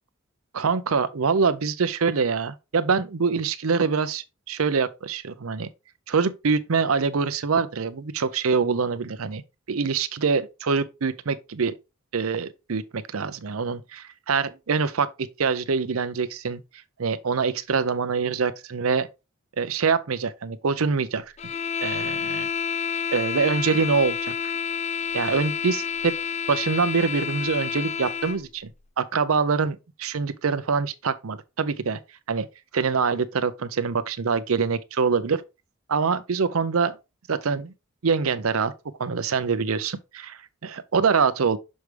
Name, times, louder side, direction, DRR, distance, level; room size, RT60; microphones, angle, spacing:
voice 1, 0.5-5.7 6.1-9.4 9.7-11.7 12.1-16.6 17.0-19.1 19.6-21.2 21.8-22.5 23.1-24.3 25.1-26.1 26.5-28.7 29.0-32.0 32.3-32.5 32.7-35.4 35.9-37.0 37.3-37.7 38.0-38.7 39.0-41.6, right 5 dB, 85° right, 0.6 m, -24 dB
sound 1, 21.4-28.4, left 7 dB, 30° left, 0.3 m, -29 dB
6.4 x 4.7 x 3.3 m
head